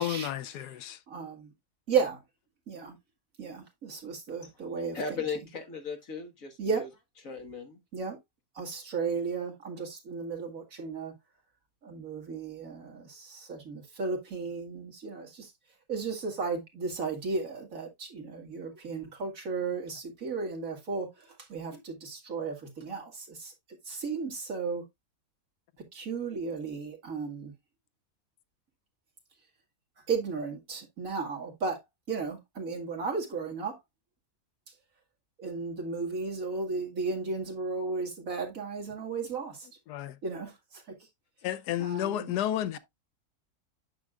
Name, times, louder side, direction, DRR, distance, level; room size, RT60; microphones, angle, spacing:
voice 1, 0.0-1.0 39.9-40.2 41.4-42.8, left 12 dB, 85° left, 1.2 m, -31 dB
voice 2, 1.1-1.5 1.9-2.2 2.7-3.0 3.4-5.2 6.6-6.9 7.9-8.2 8.5-11.1 11.8-15.5 15.9-23.5 23.9-24.8 25.9-27.5 30.1-31.8 32.1-33.8 35.4-39.7 40.2-40.8 41.8-42.3, right 4 dB, 55° right, 2.4 m, -34 dB
voice 3, 4.9-6.9 7.3-7.8, left 5 dB, 55° left, 2.0 m, -37 dB
9.2 x 6.3 x 2.4 m
omnidirectional pair, 1.7 m